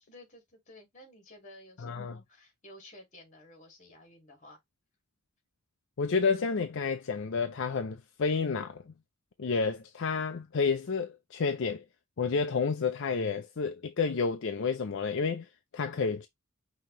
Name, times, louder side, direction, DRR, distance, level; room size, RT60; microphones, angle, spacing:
voice 1, 0.1-4.6, left 1 dB, 35° left, 2.4 m, -53 dB
voice 2, 1.8-2.2 6.0-8.8 9.4-11.8 12.2-15.5 15.7-16.3, left 5 dB, 55° left, 0.5 m, -30 dB
5.7 x 2.9 x 3.0 m
head